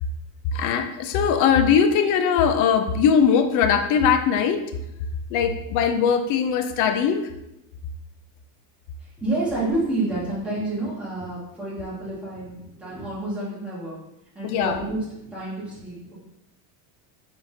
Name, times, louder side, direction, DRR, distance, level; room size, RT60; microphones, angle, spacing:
voice 1, 0.5-4.7 5.3-7.3 14.4-14.8, left 7 dB, 45° left, 7 dB, 0.4 m, -20 dB
voice 2, 9.0-14.0 14.3-15.0 15.3-16.2, right 2 dB, 5° right, -9 dB, 1.6 m, -29 dB
4.6 x 3.7 x 2.7 m, 0.87 s
cardioid pair, 155°, 46 cm